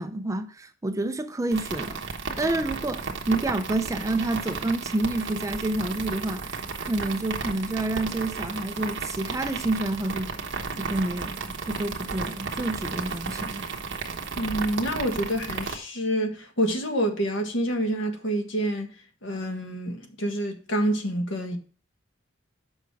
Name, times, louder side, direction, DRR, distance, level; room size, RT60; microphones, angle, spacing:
voice 1, 0.0-2.0 2.4-10.4 10.8-13.7, right 2 dB, 15° right, 0.5 m, -29 dB
sound 1, 1.5-15.8, right 4 dB, 65° right, 1.2 m, -34 dB
voice 2, 14.3-18.9 19.2-21.6, right 1 dB, 65° left, 1.7 m, -27 dB
7.1 x 5.7 x 4.7 m
head